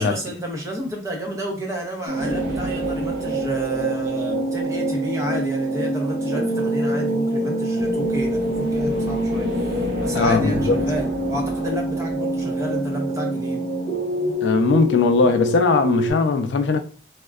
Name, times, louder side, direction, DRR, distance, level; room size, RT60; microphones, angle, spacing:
voice 1, 0.0-13.6, equal, 15° right, 0.6 m, -30 dB
sound 1, 2.1-16.1, right 1 dB, 80° right, 1.1 m, -25 dB
sound 2, 2.2-5.0 7.7-13.2, equal, 65° right, 0.5 m, -34 dB
voice 2, 10.1-10.7 14.4-16.8, left 4 dB, 75° left, 0.4 m, -19 dB
3.5 x 2.1 x 2.3 m
head